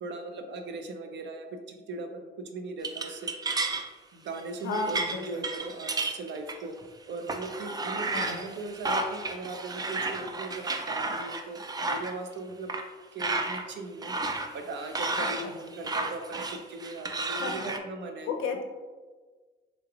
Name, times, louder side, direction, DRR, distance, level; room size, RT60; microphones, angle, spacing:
voice 1, 0.0-3.3 4.1-6.7 7.1-12.7 13.1-14.2 14.5-18.3, right 3 dB, 65° right, 5 dB, 0.5 m, -39 dB
sound 1, 2.8-3.9 4.3-4.4 4.7-6.8 7.3-12.1 12.7-12.8 13.2-13.6 14.0-17.8, right 3 dB, 20° right, 0.3 m, -32 dB
voice 2, 4.6-5.4 8.1-8.4 15.2-15.6 17.4-17.7 18.2-18.6, left 4 dB, 80° left, 5 dB, 0.5 m, -33 dB
3.7 x 3.2 x 2.3 m, 1.4 s
cardioid pair, 90°, 20 cm